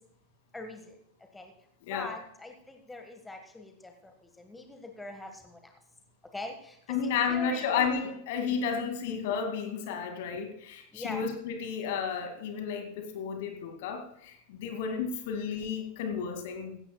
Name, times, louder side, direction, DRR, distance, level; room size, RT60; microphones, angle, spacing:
voice 1, 0.5-1.0 1.3-1.5 1.9-3.9 4.4-5.6 6.3-7.9 10.9-11.3, left 2 dB, 10° left, 5 dB, 1.5 m, -42 dB
voice 2, 6.9-16.8, left 6 dB, 50° left, 5 dB, 2.3 m, -32 dB
16.5 x 16.0 x 2.3 m, 0.72 s
figure-of-eight pair, 90°, 0 cm